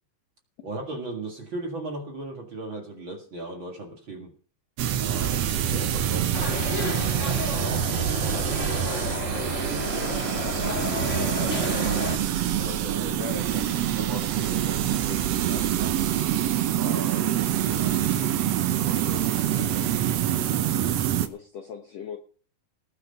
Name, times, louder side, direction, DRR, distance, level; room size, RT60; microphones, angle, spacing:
voice 1, 0.6-4.3 5.0-6.4 6.6-13.2 14.0-16.0 16.7-18.0 18.8-20.1, right 2 dB, 40° right, 2.1 m, -38 dB
sound 1, 4.8-21.3, right 11 dB, 75° right, 1.5 m, -26 dB
sound 2, 6.3-12.2, left 3 dB, 35° left, 1.2 m, -32 dB
voice 2, 13.2-13.7 19.7-19.8 21.2-22.2, left 6 dB, 65° left, 1.7 m, -39 dB
19.0 x 6.5 x 5.5 m
omnidirectional pair, 4.2 m